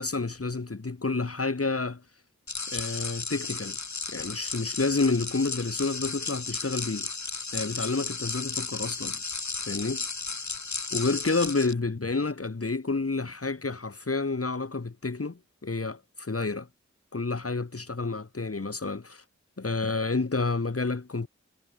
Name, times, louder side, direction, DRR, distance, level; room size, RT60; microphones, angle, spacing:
voice 1, 0.0-2.0 2.7-3.8 4.1-7.1 7.5-9.2 9.7-10.0 10.9-16.7 17.1-19.2 19.6-21.3, left 3 dB, 50° left, 1.9 m, -29 dB
sound 1, 2.5-11.7, left 4 dB, 75° left, 2.2 m, -34 dB
wide cardioid pair, 55°, 29 cm